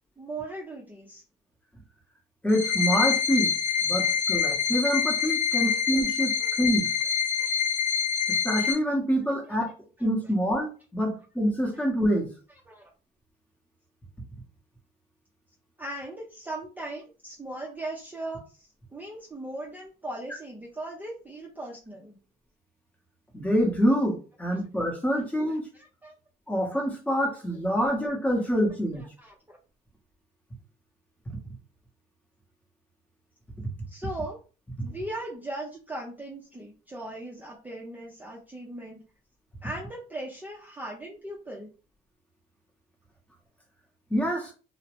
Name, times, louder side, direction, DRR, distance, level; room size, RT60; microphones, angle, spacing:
voice 1, 0.2-1.2 4.0-4.1 5.5-5.8 6.4-6.5 7.4-7.5 9.5-9.6 10.0-10.1 12.7-12.9 15.8-22.2 24.5-24.6 25.2-26.1 27.8-27.9 29.0-29.6 33.9-34.4 34.8-39.0 39.6-41.7, right 1 dB, 10° right, -3 dB, 0.5 m, -39 dB
voice 2, 2.4-3.5 3.8-6.9 8.3-9.7 10.0-12.3 23.3-25.7 26.5-29.0 31.4-31.5 44.1-44.5, equal, 10° left, 0 dB, 0.9 m, -26 dB
sound 1, 2.5-8.7, left 7 dB, 50° left, 0.7 m, -26 dB
2.7 x 2.0 x 3.0 m, 0.36 s
cardioid pair, 110°, 17 cm